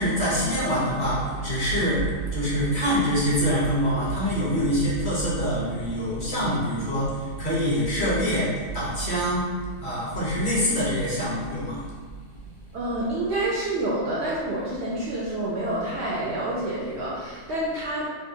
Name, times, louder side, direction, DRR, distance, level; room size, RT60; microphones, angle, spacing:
voice 1, 0.0-9.5 9.8-11.8, equal, 40° left, -8 dB, 0.8 m, -25 dB
voice 2, 12.7-18.1, right 1 dB, 70° right, -6 dB, 0.6 m, -28 dB
3.6 x 2.5 x 2.7 m, 1.5 s
omnidirectional pair, 1.6 m